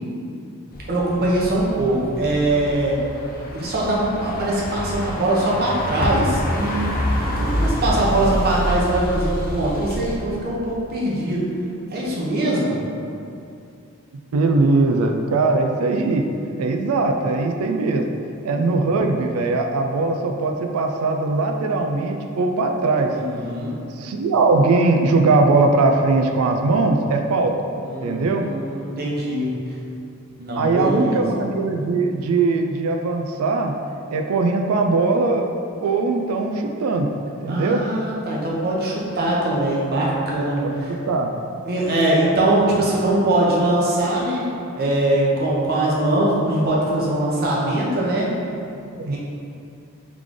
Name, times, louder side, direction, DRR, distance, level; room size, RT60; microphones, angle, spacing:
sound 1, 0.7-10.2, equal, 45° left, 0.6 m, -27 dB
voice 1, 0.9-3.0 3.5-6.9 7.4-11.4 11.9-12.8 23.1-23.7 27.8-29.5 30.4-31.2 37.5-40.9 41.7-44.5 44.7-48.3 49.0-49.2, right 1 dB, 45° right, -5 dB, 0.8 m, -22 dB
voice 2, 14.3-16.3 16.6-18.1 18.4-23.1 24.0-27.5 28.0-28.4 30.6-33.7 34.1-35.5 35.8-37.1 37.4-37.8 40.6-40.7 41.1-41.3 47.6-47.8 48.9-49.2, right 3 dB, 80° right, 3 dB, 0.4 m, -20 dB
3.6 x 3.2 x 3.7 m, 2.5 s
head